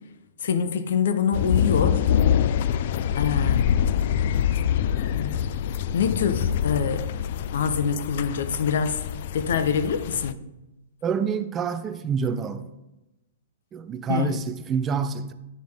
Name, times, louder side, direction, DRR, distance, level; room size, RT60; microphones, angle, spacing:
voice 1, 0.4-2.0 3.1-3.7 5.2-5.4 5.9-7.0 7.5-9.0 9.3-10.4 14.1-14.4, left 6 dB, 70° left, 0.8 m, -25 dB
sound 1, 1.3-10.3, left 9 dB, 50° left, 0.3 m, -25 dB
voice 2, 11.0-12.7 13.7-15.3, right 6 dB, 15° right, 0.4 m, -27 dB
9.1 x 6.6 x 3.5 m
hypercardioid pair, 155°, 0 cm